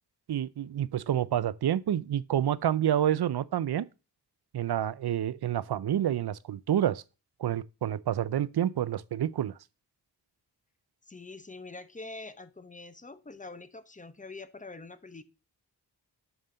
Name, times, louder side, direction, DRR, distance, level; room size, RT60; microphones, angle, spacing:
voice 1, 0.3-3.9 4.5-7.0 7.4-9.5, right 10 dB, 70° right, 0.5 m, -28 dB
voice 2, 11.1-15.2, left 3 dB, 20° left, 0.7 m, -45 dB
7.0 x 5.5 x 3.8 m
wide cardioid pair, 50°, 40 cm